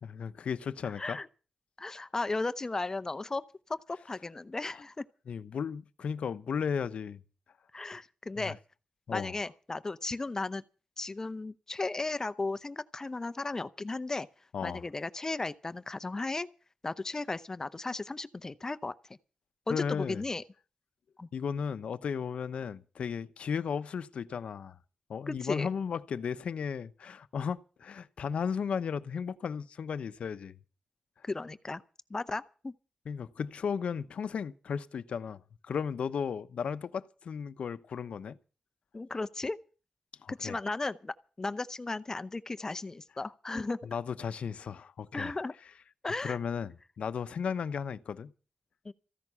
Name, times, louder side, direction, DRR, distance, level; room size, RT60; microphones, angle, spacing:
voice 1, 0.0-1.2 5.3-7.2 8.4-8.5 9.1-9.4 14.5-14.8 19.7-20.2 21.3-24.8 25.1-30.6 33.1-38.4 40.2-40.6 43.8-45.3 46.2-48.3, left 6 dB, 80° left, 0.8 m, -35 dB
voice 2, 0.8-1.3 1.8-3.4 3.7-5.0 7.7-8.6 9.1-10.6 11.0-14.3 14.6-16.5 16.8-18.9 19.7-20.4 21.2-21.3 25.3-25.7 31.2-31.8 32.1-32.7 38.9-39.6 40.3-43.8 45.1-45.5 46.0-46.4 48.8-48.9, left 3 dB, 30° left, 0.7 m, -35 dB
15.0 x 11.0 x 6.9 m
wide cardioid pair, 100°, 2 cm